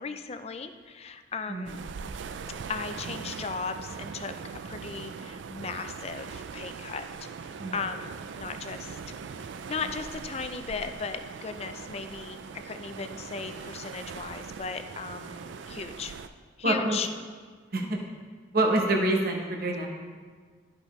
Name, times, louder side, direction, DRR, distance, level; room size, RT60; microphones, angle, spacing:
voice 1, 0.0-1.7 2.7-9.0 9.7-16.1 16.6-17.1 17.8-18.1, left 5 dB, 35° left, 9 dB, 0.4 m, -36 dB
sound 1, 1.6-16.3, right 5 dB, 80° right, 0.4 m, -41 dB
voice 2, 16.6-17.0 17.7-18.0 18.5-19.9, right 2 dB, 55° right, 1 dB, 0.9 m, -26 dB
12.5 x 5.0 x 3.1 m, 1.5 s
head